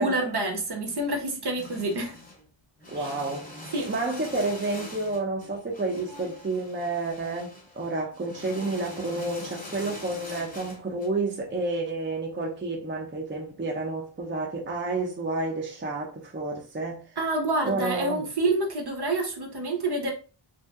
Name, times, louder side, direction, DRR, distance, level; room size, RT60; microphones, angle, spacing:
voice 1, 0.0-2.2 3.7-3.9 17.2-20.1, right 2 dB, 55° right, 0.9 m, -27 dB
sound 1, 1.0-1.1 1.5-2.4 2.8-11.1, left 2 dB, 15° left, 0.9 m, -43 dB
voice 2, 2.9-3.5 3.9-17.0 17.6-18.3, right 2 dB, 25° right, 0.6 m, -30 dB
2.7 x 2.1 x 3.4 m
wide cardioid pair, 105°, 48 cm